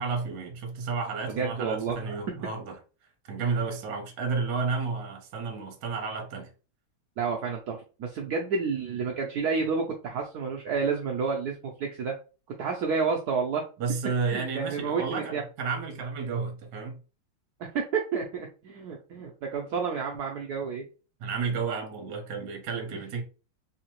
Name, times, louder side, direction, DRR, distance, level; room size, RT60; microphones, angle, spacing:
voice 1, 0.0-2.8 3.2-6.5 13.8-17.0 21.2-23.2, right 4 dB, 60° right, 1.3 m, -31 dB
voice 2, 1.3-2.2 7.2-12.1 12.6-13.6 14.3-15.4 17.6-20.8, right 5 dB, 85° right, 0.8 m, -30 dB
3.6 x 2.8 x 2.9 m
omnidirectional pair, 2.4 m